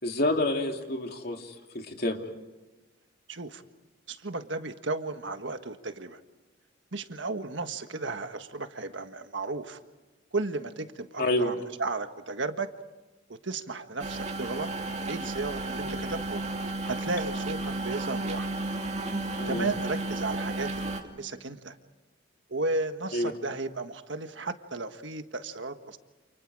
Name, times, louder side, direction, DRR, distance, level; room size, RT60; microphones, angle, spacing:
voice 1, 0.0-2.2 11.2-11.5 19.4-19.7 23.1-23.3, left 1 dB, 50° left, 3 dB, 2.9 m, -28 dB
voice 2, 3.3-3.6 4.1-6.2 6.9-9.8 10.3-12.7 13.4-14.7 15.0-16.4 16.9-18.5 19.4-21.7 22.5-26.0, right 3 dB, 60° right, 7 dB, 1.6 m, -34 dB
sound 1, 14.0-21.0, right 2 dB, 35° right, 2.6 m, -33 dB
29.5 x 29.0 x 4.9 m, 1.2 s
head